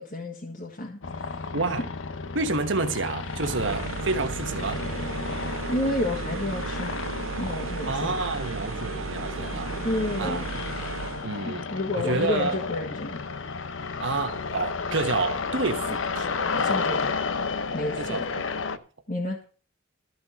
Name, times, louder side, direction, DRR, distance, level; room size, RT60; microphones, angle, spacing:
voice 1, 0.0-1.5 5.7-7.0 7.4-8.5 9.8-10.4 11.4-13.2 16.5-17.1 17.7-18.3 19.1-19.4, left 2 dB, 45° left, 1.6 m, -31 dB
sound 1, 1.0-18.8, left 4 dB, 75° left, 0.8 m, -32 dB
voice 2, 1.5-1.8 2.3-4.8 7.9-9.7 10.2-10.4 11.2-11.7 11.9-12.6 14.0-17.1 18.0-18.2, right 3 dB, 65° right, 1.3 m, -29 dB
sound 2, 3.2-11.3, right 5 dB, 85° right, 0.6 m, -35 dB
13.5 x 6.0 x 7.4 m
head